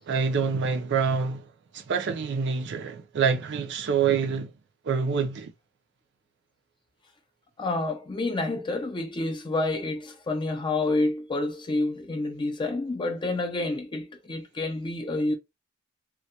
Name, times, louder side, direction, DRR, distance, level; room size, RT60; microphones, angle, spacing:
voice 1, 0.1-1.4 1.7-4.5 4.9-5.5, right 6 dB, 55° right, 0.4 m, -26 dB
voice 2, 7.6-15.3, left 2 dB, 20° left, 0.4 m, -28 dB
2.2 x 2.1 x 2.7 m
head